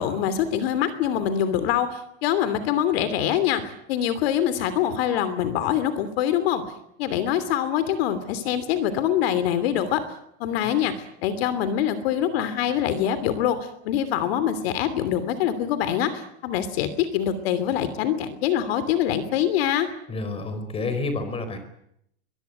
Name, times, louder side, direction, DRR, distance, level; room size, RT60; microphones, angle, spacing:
voice 1, 0.0-6.6 7.0-10.0 10.4-19.9, left 10 dB, 60° left, 13 dB, 3.0 m, -24 dB
voice 2, 20.1-21.6, left 3 dB, 15° left, 10 dB, 4.6 m, -29 dB
23.5 x 21.0 x 9.5 m, 0.74 s
supercardioid pair, 155°, 34 cm